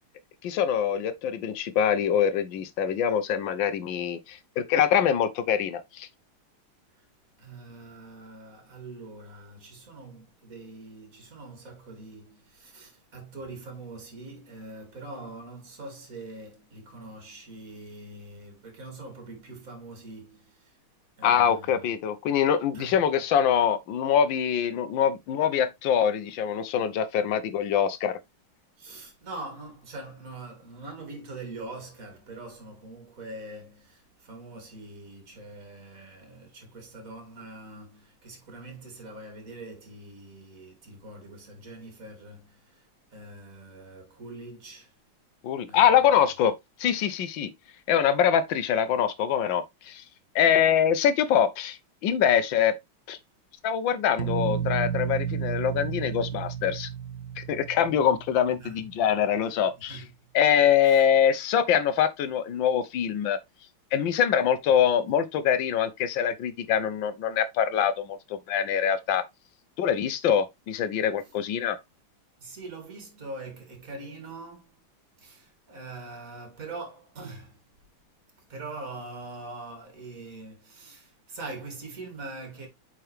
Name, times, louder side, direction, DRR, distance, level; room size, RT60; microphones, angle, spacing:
voice 1, 0.4-6.1 21.2-28.2 45.4-46.5 46.8-47.5 47.9-50.0 50.3-51.8 52.0-52.8 53.1-53.2 53.6-56.9 57.4-60.0 60.3-63.4 63.9-68.2 68.5-69.2 69.8-71.8, left 8 dB, 70° left, 1.4 m, -24 dB
voice 2, 7.4-20.8 21.2-22.0 22.7-23.0 28.8-44.9 45.7-46.1 58.6-58.9 59.8-60.1 60.8-61.0 71.2-71.3 72.4-74.8 75.2-77.6 78.5-82.7, right 2 dB, 40° right, 3.0 m, -43 dB
sound 1, 54.2-59.1, right 8 dB, 75° right, 0.7 m, -32 dB
8.7 x 4.5 x 3.2 m
omnidirectional pair, 2.3 m